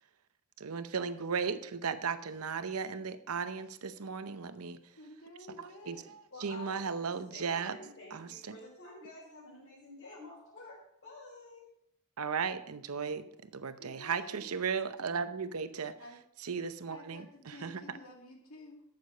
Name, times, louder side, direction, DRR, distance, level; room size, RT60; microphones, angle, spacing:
voice 1, 0.6-4.8 5.6-7.8 8.1-8.6 12.2-13.3 13.5-15.9 16.4-17.8, right 6 dB, 85° right, 11 dB, 0.7 m, -36 dB
voice 2, 5.0-6.2 13.8-14.5 16.0-16.2 16.9-18.8, left 1 dB, 75° left, 1 dB, 2.5 m, -51 dB
voice 3, 6.3-11.7, left 2 dB, 60° left, -8 dB, 4.3 m, -50 dB
12.5 x 6.9 x 5.2 m, 0.73 s
head